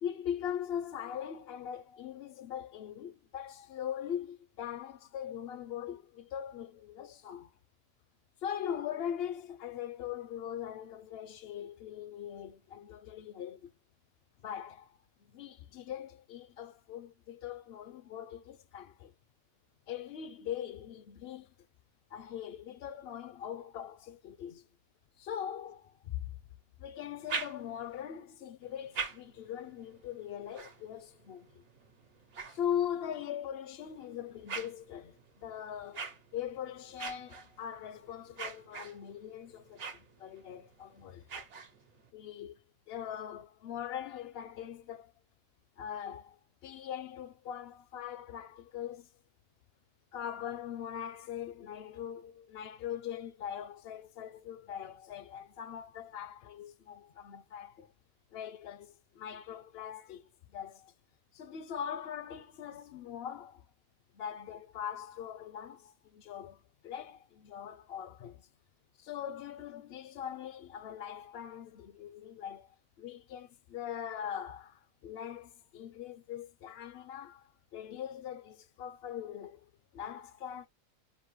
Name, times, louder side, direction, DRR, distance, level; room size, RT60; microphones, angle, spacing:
voice 1, 0.0-7.5 8.4-13.7 14.4-15.0 15.3-19.1 19.9-21.5 22.1-24.6 25.2-26.2 26.8-31.6 32.5-36.0 36.3-41.4 42.1-42.6 42.9-45.1 45.8-49.1 50.1-57.9 58.3-60.2 60.5-60.9 61.3-63.6 64.1-66.6 66.8-68.5 69.0-80.7, left 9 dB, 65° left, 0.6 m, -41 dB
sound 1, 27.0-28.0 28.6-33.2 33.8-42.1, right 5 dB, 60° right, 1.3 m, -45 dB
5.3 x 2.6 x 3.1 m
omnidirectional pair, 1.4 m